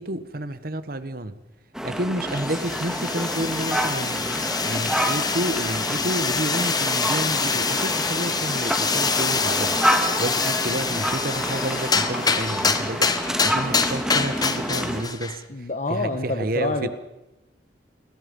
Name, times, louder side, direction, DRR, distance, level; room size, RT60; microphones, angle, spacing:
voice 1, 0.0-1.4 1.8-15.4 15.9-16.9, right 1 dB, 55° right, 12 dB, 1.4 m, -30 dB
sound 1, 1.7-15.0, equal, 5° right, 2.0 m, -28 dB
sound 2, 2.3-15.4, left 5 dB, 20° left, 1.3 m, -26 dB
sound 3, 7.2-7.8 11.1-13.8, left 3 dB, 70° left, 5.8 m, -43 dB
voice 2, 15.5-16.9, left 2 dB, 45° left, 6 dB, 1.4 m, -27 dB
29.0 x 21.0 x 5.5 m, 0.97 s
head